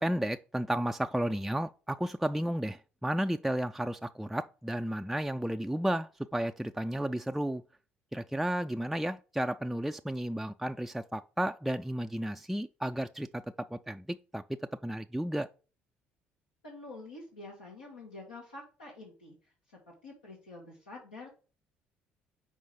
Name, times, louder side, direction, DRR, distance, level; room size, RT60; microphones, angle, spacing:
voice 1, 0.0-7.6 8.1-14.4 14.8-15.5, right 1 dB, ahead, 0.3 m, -33 dB
voice 2, 16.6-19.3 19.7-21.3, left 2 dB, 90° left, 1.6 m, -47 dB
5.4 x 4.6 x 3.7 m
hypercardioid pair, 55°, 5 cm